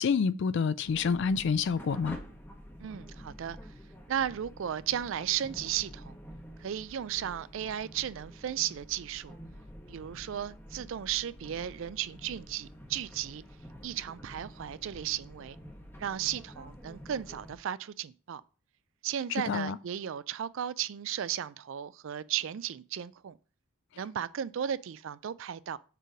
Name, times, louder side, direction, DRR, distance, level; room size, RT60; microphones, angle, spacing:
voice 1, 0.0-2.2 19.3-19.8, left 5 dB, 55° left, 0.3 m, -28 dB
sound 1, 0.8-17.6, equal, 10° left, 0.8 m, -48 dB
voice 2, 2.8-3.6 4.1-6.1 6.6-9.3 9.9-13.4 13.8-15.6 16.0-18.4 19.0-23.4 24.0-25.8, right 10 dB, 60° right, 0.3 m, -35 dB
6.7 x 3.2 x 4.9 m
head